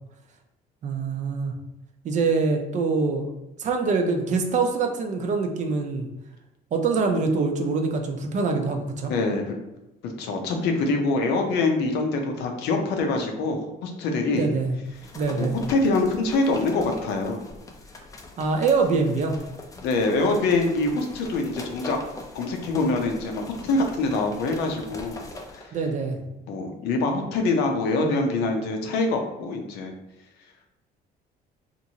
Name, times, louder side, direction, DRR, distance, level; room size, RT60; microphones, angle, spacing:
voice 1, 0.8-1.5 2.0-3.3 3.6-6.1 6.7-9.1 14.3-14.7 15.2-15.6 18.4-19.4 25.7-26.2, right 4 dB, 45° right, 4 dB, 0.5 m, -24 dB
voice 2, 9.1-9.6 10.0-14.5 15.4-17.4 19.8-22.0 22.3-25.2 25.5-25.7 26.5-29.9, left 3 dB, 85° left, 3 dB, 0.6 m, -25 dB
sound 1, 14.9-25.7, left 2 dB, 20° left, 0.4 m, -42 dB
2.9 x 2.5 x 2.8 m, 0.92 s
cardioid pair, 110°, 17 cm